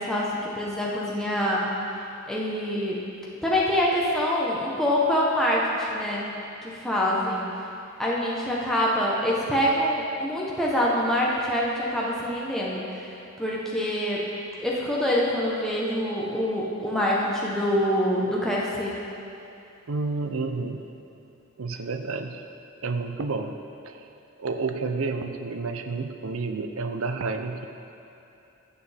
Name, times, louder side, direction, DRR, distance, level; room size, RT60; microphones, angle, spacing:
voice 1, 0.0-1.7 2.3-3.1 3.4-6.3 6.6-7.5 8.0-14.3 14.6-19.0, equal, ahead, -6 dB, 1.0 m, -25 dB
voice 2, 19.9-20.8 21.6-22.4 22.8-23.6 23.8-24.0 24.4-27.7, right 3 dB, 75° right, 6 dB, 0.6 m, -30 dB
16.0 x 6.8 x 3.5 m, 2.8 s
head